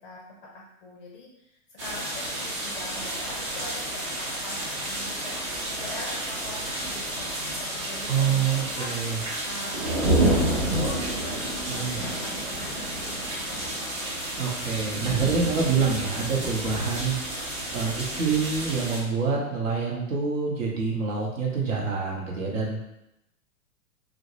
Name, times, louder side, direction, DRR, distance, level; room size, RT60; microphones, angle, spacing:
voice 1, 0.5-5.4 5.8-9.0 9.4-14.4, left 2 dB, 40° left, -2 dB, 0.4 m, -42 dB
sound 1, 1.8-19.0, right 1 dB, 25° right, 0.3 m, -30 dB
voice 2, 8.1-9.2 11.7-12.0 14.4-17.2 17.7-22.8, right 5 dB, 60° right, -2 dB, 0.8 m, -26 dB
2.1 x 2.0 x 2.9 m, 0.88 s
figure-of-eight pair, 100°, 43 cm